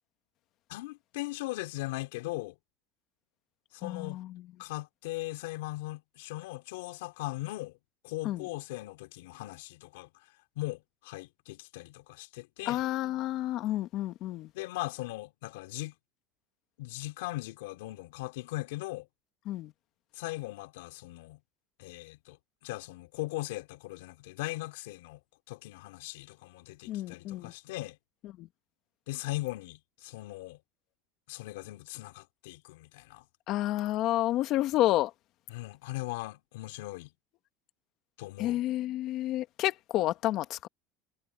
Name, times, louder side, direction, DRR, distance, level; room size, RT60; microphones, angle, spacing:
voice 1, 0.7-2.6 3.7-4.2 4.6-7.8 8.0-10.1 10.6-12.8 14.5-15.9 16.8-19.1 20.1-21.4 21.8-22.4 22.6-25.2 25.5-28.0 29.1-30.6 31.3-33.2 35.5-37.1 38.2-38.6, left 19 dB, 85° left, 4.1 m, -39 dB
voice 2, 3.8-4.4 8.2-8.4 12.6-14.5 19.4-19.7 26.9-27.5 28.4-28.5 33.5-35.1 38.4-40.7, left 14 dB, 50° left, 1.8 m, -30 dB
supercardioid pair, 140°, 0 cm